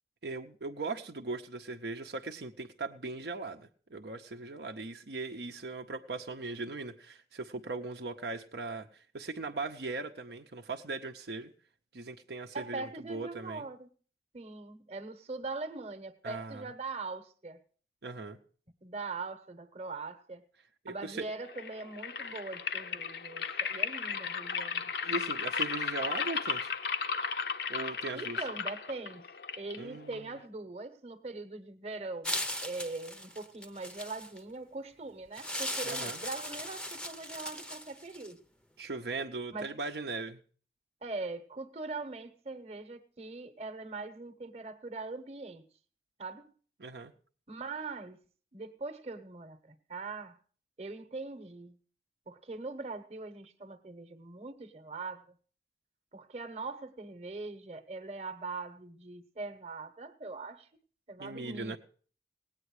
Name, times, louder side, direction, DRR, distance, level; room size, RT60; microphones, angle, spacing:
voice 1, 0.2-11.5 11.9-13.7 16.2-16.6 18.0-18.4 20.8-21.2 25.0-26.7 27.7-28.4 29.8-30.3 35.8-36.2 38.8-40.4 46.8-47.1 61.2-61.8, right 3 dB, 70° right, 0.7 m, -39 dB
voice 2, 12.5-13.9 14.3-17.6 18.8-20.5 20.9-24.9 28.1-29.3 29.6-38.4 39.5-39.7 41.0-45.7 46.2-46.5 47.5-48.2 48.5-50.4 50.8-51.8 52.3-55.4 56.1-60.7 61.1-61.8, right 3 dB, 35° right, 1.0 m, -41 dB
sound 1, 21.4-30.5, left 6 dB, 65° left, 0.7 m, -35 dB
sound 2, 32.2-34.4 35.3-38.3, left 1 dB, 5° left, 0.6 m, -38 dB
18.0 x 9.0 x 4.8 m
head